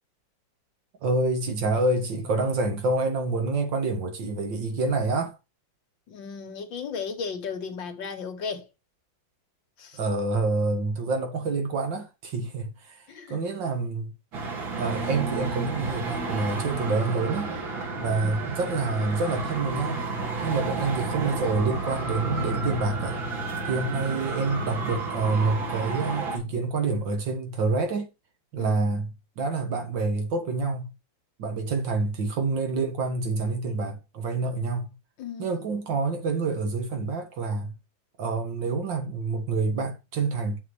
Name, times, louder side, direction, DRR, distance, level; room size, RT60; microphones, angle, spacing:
voice 1, 1.0-5.4 9.9-14.1 14.8-17.5 18.0-20.0 20.4-23.2 23.6-28.1 28.5-30.9 31.4-34.9 35.4-37.7 38.2-40.6, right 3 dB, 70° right, 2.3 m, -27 dB
voice 2, 6.1-8.7 9.8-10.0 13.1-13.4 17.9-18.4 23.8-24.1 28.6-29.0 35.2-35.8, left 5 dB, 75° left, 2.1 m, -36 dB
Traffic noise roadway noise, 14.3-26.4, right 3 dB, 85° right, 2.9 m, -31 dB
8.4 x 6.3 x 3.2 m
omnidirectional pair, 2.1 m